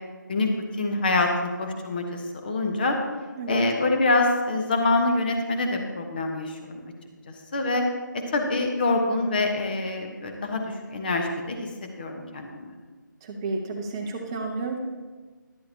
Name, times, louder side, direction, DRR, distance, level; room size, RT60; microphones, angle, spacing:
voice 1, 0.3-3.0 3.5-6.8 7.3-7.8 8.1-12.7, left 2 dB, 25° left, 3 dB, 1.1 m, -26 dB
voice 2, 13.2-14.8, right 3 dB, 15° right, 1 dB, 0.8 m, -31 dB
13.0 x 11.5 x 2.8 m, 1.3 s
figure-of-eight pair, 155°, 11 cm